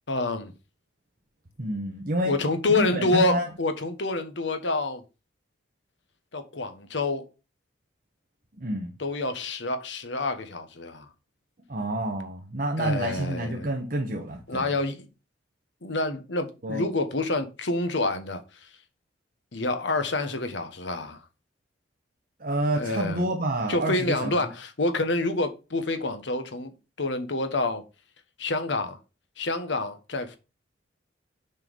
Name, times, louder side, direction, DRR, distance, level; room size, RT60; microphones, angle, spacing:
voice 1, 0.1-0.5 2.2-5.0 6.3-7.3 9.0-11.1 12.8-13.7 14.5-15.0 15.8-18.4 19.5-21.2 22.7-23.3 23.7-27.8 28.4-29.0 29.4-30.4, left 2 dB, 70° left, 1.2 m, -27 dB
voice 2, 1.6-2.3 2.7-3.5 8.6-8.9 11.7-14.7 16.6-16.9 22.4-24.5, right 1 dB, 45° right, 1.0 m, -28 dB
6.7 x 4.6 x 5.3 m
head